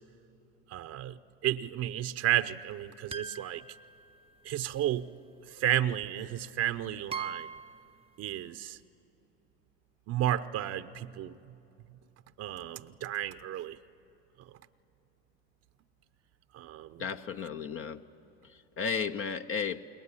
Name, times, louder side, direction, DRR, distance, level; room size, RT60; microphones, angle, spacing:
voice 1, 0.7-3.6 4.4-5.1 5.5-7.5 8.2-8.8 10.1-11.4 12.4-13.8 16.5-17.0, right 12 dB, 50° right, 0.9 m, -32 dB
sound 1, 3.1-4.6 6.0-6.1 7.1-7.9, right 6 dB, 15° right, 0.7 m, -41 dB
voice 2, 17.0-18.1 18.4-19.8, left 6 dB, 40° left, 0.9 m, -34 dB
29.0 x 21.0 x 9.8 m
hypercardioid pair, 80°, 33 cm